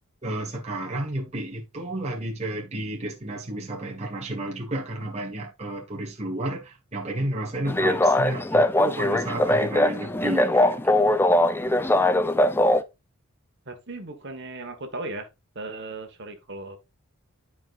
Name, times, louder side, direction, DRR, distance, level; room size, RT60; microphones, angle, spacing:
voice 1, 0.2-11.4, right 1 dB, 30° right, 1.2 m, -32 dB
sound 1, 7.7-12.8, left 1 dB, 10° left, 0.4 m, -21 dB
voice 2, 13.6-15.3 15.5-16.8, right 2 dB, 50° right, 1.4 m, -36 dB
11.5 x 4.8 x 2.5 m
head